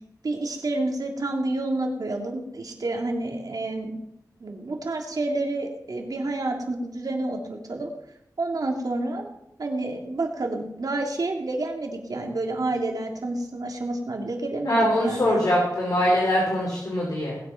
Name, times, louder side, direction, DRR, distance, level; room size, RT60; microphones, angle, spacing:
voice 1, 0.2-4.0 4.4-7.9 8.4-9.2 9.6-15.4, right 2 dB, 65° right, 1 dB, 3.0 m, -29 dB
voice 2, 14.6-17.4, equal, 65° left, -4 dB, 4.9 m, -23 dB
20.0 x 8.0 x 5.9 m, 0.80 s
wide cardioid pair, 70°, 7 cm